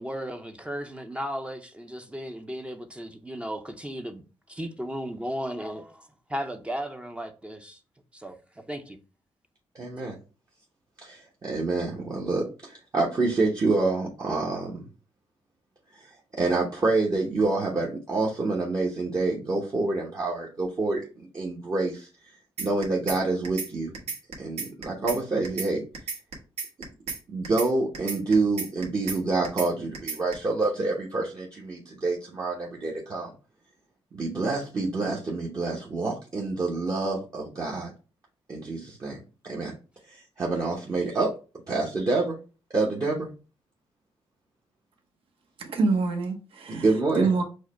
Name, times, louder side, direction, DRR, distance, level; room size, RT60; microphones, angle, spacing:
voice 1, 0.0-7.8 8.1-9.0, equal, 10° right, 0.5 m, -35 dB
voice 2, 9.7-10.1 11.0-14.8 15.9-22.1 22.6-24.0 24.4-25.8 27.3-33.3 34.1-37.9 38.5-39.7 40.1-41.3 41.7-42.4 42.7-43.3 46.7-47.3, right 3 dB, 35° right, 0.9 m, -27 dB
sound 1, 22.6-23.2 23.4-23.7 23.9-25.2 25.4-25.7 25.9-27.2 27.4-27.7 27.9-29.2 29.4-29.7 29.9-30.3, right 5 dB, 80° right, 1.2 m, -33 dB
voice 3, 45.6-47.4, right 4 dB, 65° right, 0.9 m, -26 dB
4.7 x 2.2 x 4.2 m
cardioid pair, 100°, 10 cm